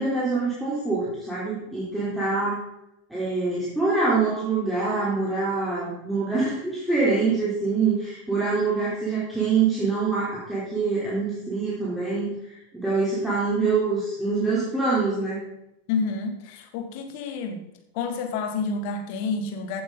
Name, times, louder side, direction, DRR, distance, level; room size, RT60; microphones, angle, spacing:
voice 1, 0.0-2.6 3.1-15.4, right 4 dB, 5° right, -9 dB, 3.7 m, -25 dB
voice 2, 15.9-17.6 17.9-19.8, left 4 dB, 45° left, 6 dB, 2.0 m, -29 dB
15.5 x 8.5 x 4.0 m, 0.86 s
figure-of-eight pair, 90°, 0 cm